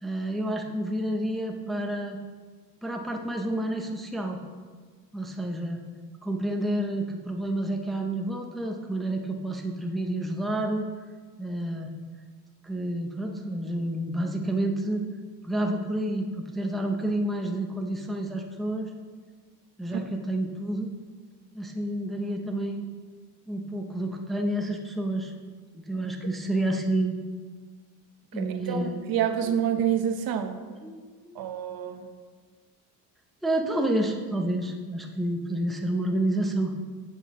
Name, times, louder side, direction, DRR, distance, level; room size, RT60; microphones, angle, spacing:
voice 1, 0.0-2.2 2.8-4.4 5.1-5.8 6.2-10.9 11.4-11.9 12.6-15.1 15.4-18.9 19.8-20.9 21.5-22.9 23.5-25.3 25.7-27.2 28.3-29.0 29.4-29.6 30.8-30.9 31.2-31.3 33.4-36.7, right 1 dB, ahead, 2 dB, 0.6 m, -29 dB
voice 2, 28.3-30.6 31.3-32.1, right 9 dB, 65° right, 7 dB, 0.8 m, -28 dB
10.0 x 7.2 x 3.6 m, 1.5 s
cardioid pair, 150°, 39 cm